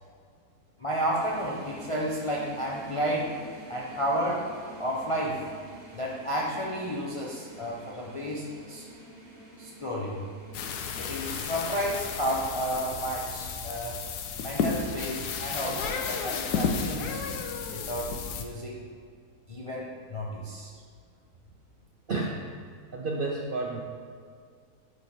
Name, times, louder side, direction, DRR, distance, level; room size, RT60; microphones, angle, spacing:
voice 1, 0.8-3.3 3.7-4.5 4.8-5.4 5.9-8.8 9.6-10.2 11.0-14.0 14.4-17.2 17.7-18.8 19.5-20.7, equal, 60° left, -4 dB, 0.3 m, -32 dB
sound 1, 1.1-12.4, right 1 dB, 55° right, 1.7 m, -48 dB
sound 2, 10.5-18.4, left 5 dB, 90° left, 1.2 m, -32 dB
voice 2, 22.1-22.5 22.9-23.8, right 3 dB, 85° right, -1 dB, 0.4 m, -31 dB
9.5 x 3.2 x 4.2 m, 2.1 s
omnidirectional pair, 1.6 m